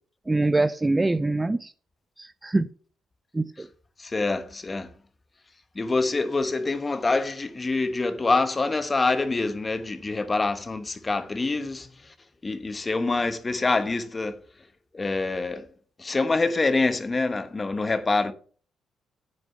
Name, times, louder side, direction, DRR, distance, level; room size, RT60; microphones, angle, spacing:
voice 1, 0.3-1.7 2.2-2.7 3.3-3.7, right 2 dB, 15° right, 0.4 m, -24 dB
voice 2, 4.0-4.9 5.7-11.9 12.4-14.4 14.9-15.7 16.0-18.3, left 3 dB, 25° left, 1.1 m, -25 dB
9.5 x 4.9 x 5.7 m
cardioid pair, 90°, 0 cm